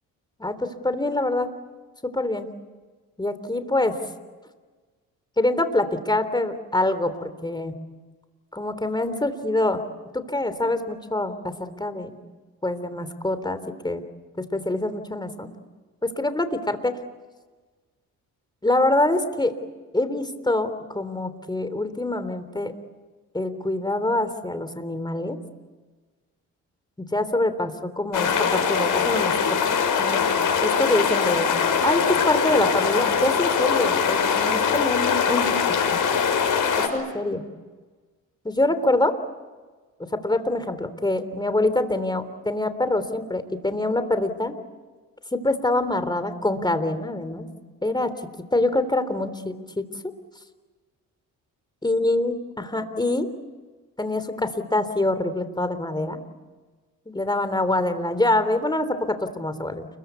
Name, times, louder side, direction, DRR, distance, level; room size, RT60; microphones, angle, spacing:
voice 1, 0.4-1.5 2.0-2.5 3.2-4.0 5.4-7.7 8.5-9.8 10.1-12.1 12.6-14.0 14.4-15.5 16.0-17.0 18.6-19.5 19.9-22.7 23.3-25.4 27.0-29.6 30.0-30.2 30.6-31.5 31.8-35.8 36.9-37.4 38.5-39.1 40.1-44.5 45.3-47.5 47.8-48.1 48.5-49.9 51.8-53.3 54.0-56.2 57.1-59.9, left 2 dB, 10° left, 10 dB, 3.5 m, -25 dB
sound 1, 28.1-36.9, left 6 dB, 60° left, 6.6 m, -22 dB
29.5 x 22.5 x 8.4 m, 1.3 s
cardioid pair, 75°, 35 cm